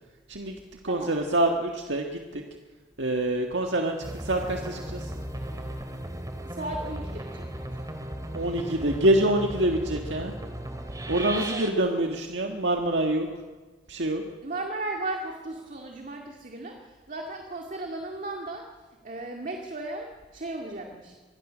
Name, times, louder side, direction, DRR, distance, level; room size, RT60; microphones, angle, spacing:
voice 1, 0.3-2.4 3.0-5.1 8.3-10.3 11.1-13.3 13.9-14.2, right 1 dB, 85° right, 2 dB, 1.8 m, -26 dB
sound 1, 4.0-11.7, right 1 dB, 20° right, 2.3 m, -36 dB
voice 2, 6.4-7.9 11.4-11.6 14.4-18.7 19.0-21.1, right 2 dB, 45° right, 1 dB, 2.1 m, -36 dB
25.0 x 21.0 x 6.3 m, 1.3 s
head